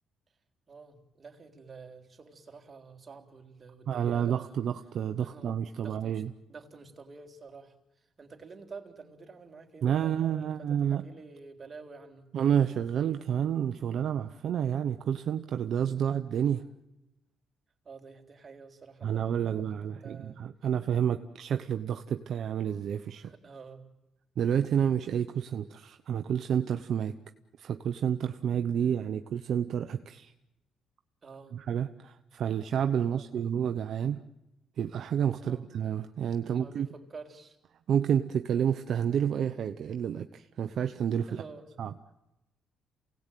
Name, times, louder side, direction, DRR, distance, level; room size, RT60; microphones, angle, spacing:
voice 1, 0.7-4.6 5.2-6.2 6.5-12.3 17.8-20.4 23.2-23.9 31.2-31.6 33.1-33.4 35.4-35.7 36.4-37.6 41.3-41.6, right 4 dB, 35° right, 3 dB, 3.9 m, -49 dB
voice 2, 3.9-6.3 9.8-11.0 12.3-16.6 19.0-23.3 24.4-27.1 27.6-30.3 31.5-34.2 34.8-36.9 37.9-41.4 41.8-41.9, right 8 dB, 65° right, 8 dB, 0.9 m, -29 dB
28.5 x 18.5 x 9.2 m, 0.97 s
cardioid pair, 80°, 0 cm